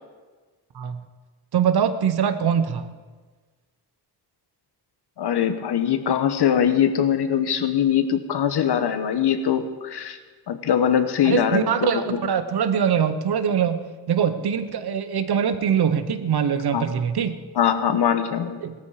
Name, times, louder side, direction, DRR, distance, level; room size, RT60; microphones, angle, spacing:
voice 1, 1.5-2.9 11.2-17.4 18.6-18.7, right 8 dB, 70° right, 11 dB, 1.1 m, -23 dB
voice 2, 5.2-10.2 10.5-11.9 16.7-16.8 17.6-18.6, left 8 dB, 80° left, 10 dB, 1.2 m, -22 dB
18.5 x 13.0 x 4.9 m, 1.4 s
wide cardioid pair, 150°, 40 cm